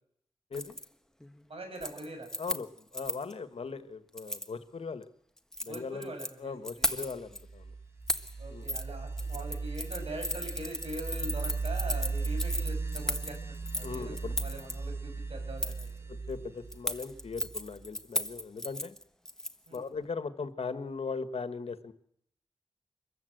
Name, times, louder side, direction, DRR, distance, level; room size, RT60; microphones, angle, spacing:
Keys jangling, 0.5-0.8 1.2-1.5 1.8-3.3 4.2-4.5 5.4-6.3 6.6-7.4 8.1-8.3 8.7-8.9 9.2-14.7 15.6-15.9 16.7-19.8 20.1-20.2, left 1 dB, 5° left, 1.5 m, -36 dB
voice 1, 1.5-2.3 5.7-7.0 8.4-15.9 19.7-19.8, right 1 dB, 70° right, 4 dB, 7.1 m, -42 dB
voice 2, 2.4-5.1 5.6-6.1 6.4-7.7 8.5-8.7 13.8-14.3 16.1-19.0 19.7-21.9, left 4 dB, 80° left, 11 dB, 1.7 m, -39 dB
sound 1, 7.3-17.8, right 4 dB, 25° right, 2.8 m, -37 dB
24.5 x 15.0 x 7.9 m, 0.70 s
wide cardioid pair, 75°, 10 cm